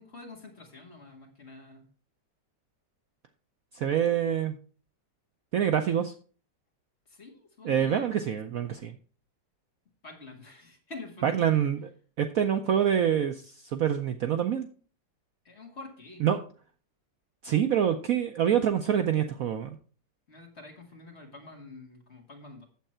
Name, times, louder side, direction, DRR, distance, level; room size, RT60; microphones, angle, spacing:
voice 1, 0.0-1.9 7.1-8.4 10.0-11.6 15.4-16.3 20.3-22.7, left 3 dB, 35° left, 2 dB, 2.2 m, -47 dB
voice 2, 3.8-4.6 5.5-6.1 7.6-8.9 11.2-11.9 12.2-13.4 13.7-14.7 16.2-16.4 17.4-19.7, right 9 dB, 65° right, 7 dB, 0.9 m, -26 dB
9.0 x 7.6 x 4.4 m, 0.39 s
omnidirectional pair, 2.0 m